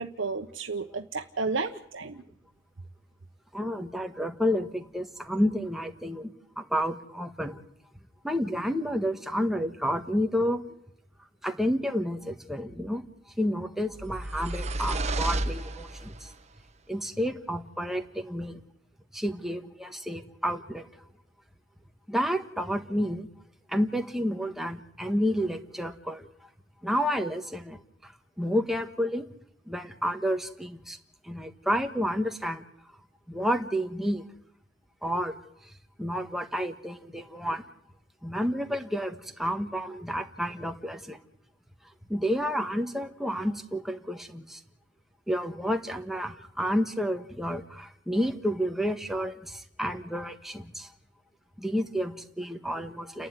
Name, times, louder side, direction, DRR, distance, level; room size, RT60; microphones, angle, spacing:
voice 1, 0.0-2.2, right 4 dB, 75° right, 4 dB, 1.1 m, -32 dB
voice 2, 3.5-7.6 8.2-10.8 11.4-13.0 13.4-16.3 16.9-18.6 19.1-20.9 22.1-23.3 23.7-26.3 26.8-28.1 28.4-29.2 29.7-31.0 31.2-32.7 33.3-34.2 35.0-35.4 36.0-37.6 38.2-41.2 42.1-44.6 45.3-50.9 51.6-53.3, equal, ahead, 5 dB, 1.5 m, -30 dB
sound 1, 13.9-16.3, right 2 dB, 35° right, 1.1 m, -31 dB
29.5 x 11.5 x 9.8 m, 0.75 s
head